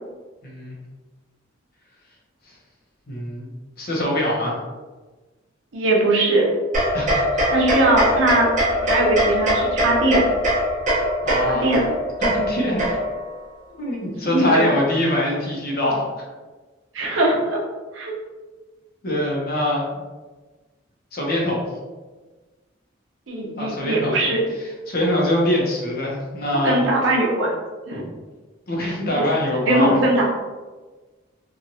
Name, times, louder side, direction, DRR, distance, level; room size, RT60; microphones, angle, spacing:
voice 1, 0.4-0.8 3.1-3.5 3.8-4.6 6.9-7.2 11.2-11.7 12.2-13.0 13.8-16.1 19.0-20.0 21.1-21.7 23.6-24.3 24.9-26.8 28.7-29.9, left 1 dB, 50° left, -3 dB, 0.7 m, -23 dB
voice 2, 5.7-6.5 7.5-8.5 8.8-10.4 11.5-11.9 14.2-14.7 16.9-17.6 17.9-18.1 23.3-24.4 26.5-27.5 27.9-28.1 29.1-29.3 29.5-30.2, right 2 dB, 75° right, -2 dB, 0.7 m, -20 dB
sound 1, 6.7-13.3, equal, 40° right, 0.8 m, -22 dB
2.9 x 2.4 x 2.6 m, 1.3 s
head